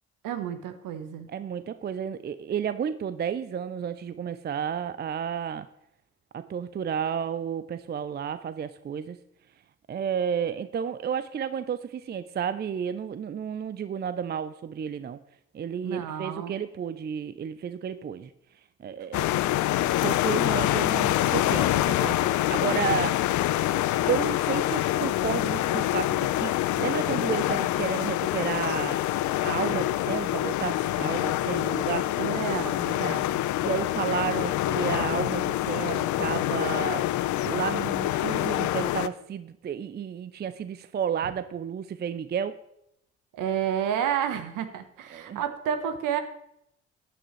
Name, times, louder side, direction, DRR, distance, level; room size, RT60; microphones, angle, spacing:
voice 1, 0.2-1.3 15.8-16.6 29.6-29.9 32.2-33.4 43.3-46.2, right 9 dB, 60° right, 9 dB, 1.2 m, -30 dB
voice 2, 1.3-5.7 6.3-9.2 9.9-15.2 15.5-18.3 18.8-19.4 19.8-23.2 24.1-29.0 29.4-32.1 33.6-42.6 45.1-45.4, right 8 dB, 30° right, 14 dB, 0.5 m, -32 dB
sound 1, 19.1-39.1, left 15 dB, 55° left, 0.6 m, -26 dB
14.5 x 9.7 x 3.2 m, 0.79 s
figure-of-eight pair, 45°, 35 cm